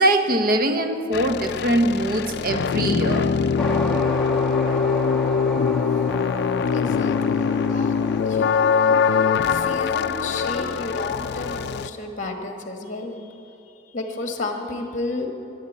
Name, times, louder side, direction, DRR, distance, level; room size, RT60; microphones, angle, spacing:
voice 1, 0.0-3.4, right 1 dB, 50° right, 6 dB, 1.0 m, -22 dB
sound 1, 1.1-11.9, left 6 dB, 55° left, 0.3 m, -23 dB
sound 2, 3.6-12.1, left 1 dB, ahead, 1.2 m, -32 dB
voice 2, 6.7-15.3, left 2 dB, 40° left, 4 dB, 1.4 m, -32 dB
12.5 x 10.0 x 8.3 m, 3.0 s
head